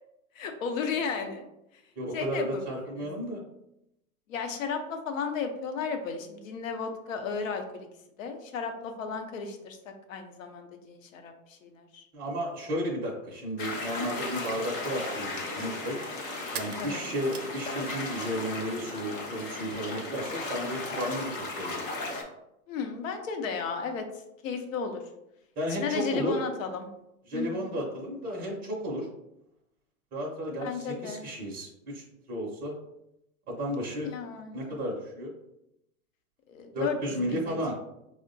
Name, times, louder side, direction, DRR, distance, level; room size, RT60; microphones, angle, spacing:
voice 1, 0.4-1.5 2.1-2.6 4.3-7.9 8.2-9.8 10.1-12.0 16.8-17.1 22.7-24.0 24.4-25.0 25.8-26.9 27.3-27.8 30.6-31.3 34.0-34.8 36.5-37.0 37.2-37.8, left 5 dB, 60° left, 5 dB, 0.7 m, -34 dB
voice 2, 2.0-3.4 12.1-16.0 16.5-21.3 21.6-21.8 25.6-26.4 27.3-29.1 30.1-32.7 33.5-34.1 34.5-35.3 36.7-37.8, equal, 20° right, -3 dB, 0.6 m, -33 dB
sound 1, 13.6-22.2, left 2 dB, 25° left, 0.4 m, -36 dB
sound 2, 16.5-18.4 18.7-19.6, right 8 dB, 80° right, 0.5 m, -44 dB
4.5 x 2.1 x 2.5 m, 0.86 s
hypercardioid pair, 120°, 44 cm